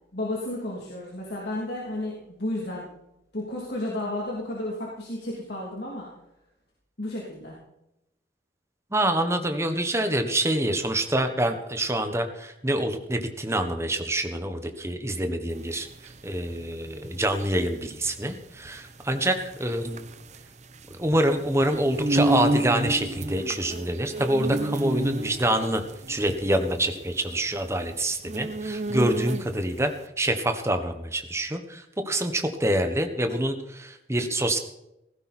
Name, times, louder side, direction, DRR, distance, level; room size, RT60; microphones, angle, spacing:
voice 1, 0.1-2.9 3.3-6.1 7.0-7.6, left 1 dB, 60° left, -3 dB, 3.1 m, -32 dB
voice 2, 8.9-20.0 21.0-25.8 26.1-29.9 30.2-34.6, right 1 dB, 15° right, 7 dB, 1.4 m, -26 dB
sound 1, 15.6-29.8, right 1 dB, 40° right, 0.9 m, -30 dB
16.5 x 15.0 x 4.4 m, 0.85 s
head